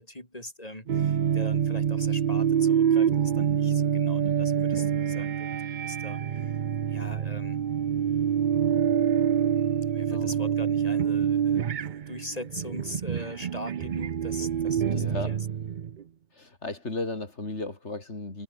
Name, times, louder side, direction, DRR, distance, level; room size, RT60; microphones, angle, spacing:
voice 1, 0.0-6.5 6.9-7.6 9.1-11.8 12.1-15.4, left 1 dB, 30° left, 6.5 m, -42 dB
sound 1, 0.9-16.0, right 8 dB, 50° right, 0.7 m, -26 dB
voice 2, 4.2-4.6 10.1-10.3 14.9-15.4 16.3-18.4, left 2 dB, 75° left, 4.1 m, -35 dB
omnidirectional pair, 1.2 m